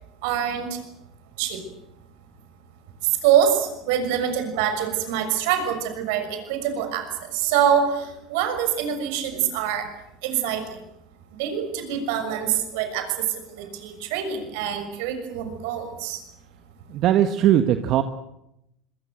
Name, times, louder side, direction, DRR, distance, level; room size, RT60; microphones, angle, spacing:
voice 1, 0.2-0.8 1.4-1.6 3.2-7.0 7.3-9.8 10.2-10.6 11.4-13.3 13.6-16.2, right 9 dB, 70° right, 8 dB, 6.4 m, -25 dB
voice 2, 16.9-18.0, right 11 dB, 55° right, 9 dB, 1.6 m, -19 dB
26.5 x 23.0 x 8.0 m, 0.84 s
hypercardioid pair, 85°, 0 cm